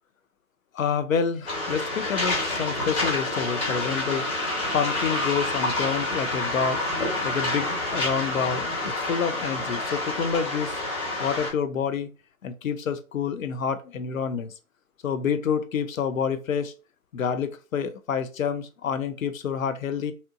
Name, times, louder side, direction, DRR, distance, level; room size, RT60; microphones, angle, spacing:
voice 1, 0.7-4.3 4.7-6.8 7.2-10.8 11.2-12.1 12.4-14.5 15.0-16.7 17.1-20.1, left 6 dB, 65° left, 0.6 m, -28 dB
Waves surf, 1.5-11.5, left 2 dB, 15° left, 1.0 m, -28 dB
2.8 x 2.1 x 2.6 m
figure-of-eight pair, 130°, 43 cm